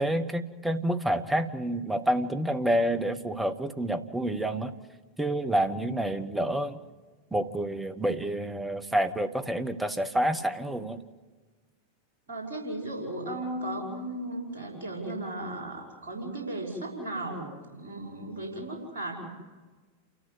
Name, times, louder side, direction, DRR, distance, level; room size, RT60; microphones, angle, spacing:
voice 1, 0.0-4.7 5.2-6.8 7.3-11.0, right 1 dB, 5° right, 8 dB, 1.3 m, -28 dB
voice 2, 12.3-19.3, right 1 dB, 60° right, -1 dB, 5.6 m, -36 dB
29.0 x 14.0 x 8.2 m, 1.4 s
figure-of-eight pair, 90°, 0 cm